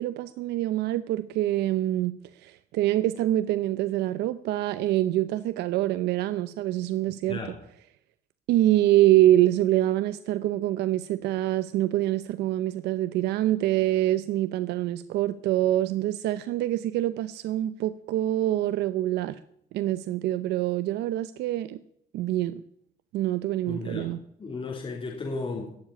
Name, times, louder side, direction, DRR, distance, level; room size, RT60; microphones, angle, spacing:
voice 1, 0.0-7.4 8.5-19.4 19.7-21.8 22.1-22.6 23.1-24.2, right 14 dB, 80° right, 0.7 m, -25 dB
voice 2, 7.2-7.6 23.7-25.7, left 3 dB, 35° left, 3.5 m, -35 dB
18.0 x 7.5 x 9.9 m
cardioid pair, 110°, 17 cm